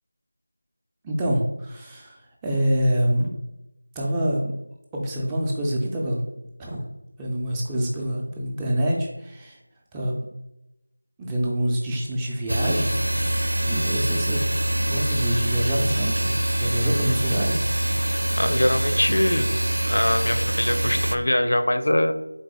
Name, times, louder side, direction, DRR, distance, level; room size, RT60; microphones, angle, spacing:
voice 1, 1.0-3.3 4.0-4.5 4.9-6.3 6.6-6.9 7.2-9.6 9.9-10.1 11.2-13.0 13.6-14.4 14.8-17.6, equal, 5° right, -3 dB, 0.3 m, -26 dB
sound 1, 12.5-21.2, right 1 dB, 80° right, 0.4 m, -24 dB
voice 2, 18.4-19.5 19.9-22.1, left 1 dB, 75° left, 8 dB, 0.5 m, -22 dB
3.9 x 3.5 x 3.8 m, 0.91 s
figure-of-eight pair, 175°, 0 cm